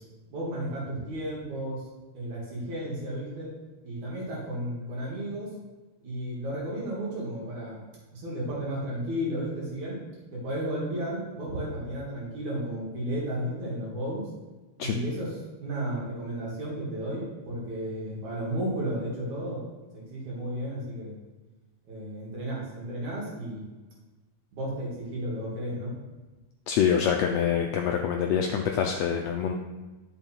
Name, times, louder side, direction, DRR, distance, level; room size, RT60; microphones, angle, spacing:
voice 1, 0.3-1.8 2.1-3.5 3.8-5.5 6.0-7.8 8.1-10.0 10.3-14.2 14.8-15.3 15.6-19.6 19.9-21.1 21.9-23.7 24.5-25.9, right 1 dB, 65° right, -5 dB, 3.7 m, -33 dB
voice 2, 26.7-29.5, left 8 dB, 80° left, 3 dB, 1.5 m, -25 dB
10.5 x 6.1 x 4.5 m, 1.2 s
omnidirectional pair, 3.6 m